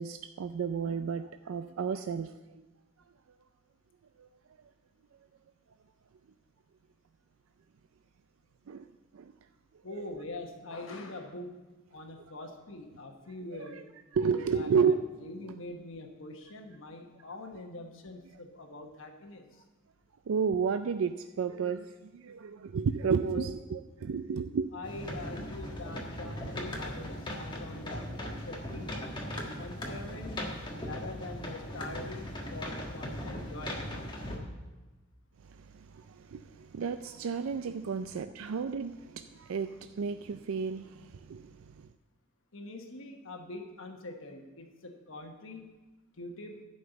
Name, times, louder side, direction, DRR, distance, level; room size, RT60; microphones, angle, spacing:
voice 1, 0.0-2.6 4.2-4.3 8.7-9.3 13.4-13.8 14.1-15.0 15.5-15.6 20.3-24.7 35.4-41.9, right 6 dB, 80° right, 9 dB, 0.4 m, -32 dB
voice 2, 9.8-11.6 11.9-13.9 14.2-14.9 15.2-19.6 23.3-23.5 24.7-28.9 29.6-30.4 30.7-33.9 42.5-45.8 46.2-46.6, left 2 dB, 70° left, 3 dB, 1.2 m, -44 dB
sound 1, 24.8-34.4, left 1 dB, 20° left, 1.4 m, -39 dB
11.0 x 5.5 x 7.9 m, 1.2 s
head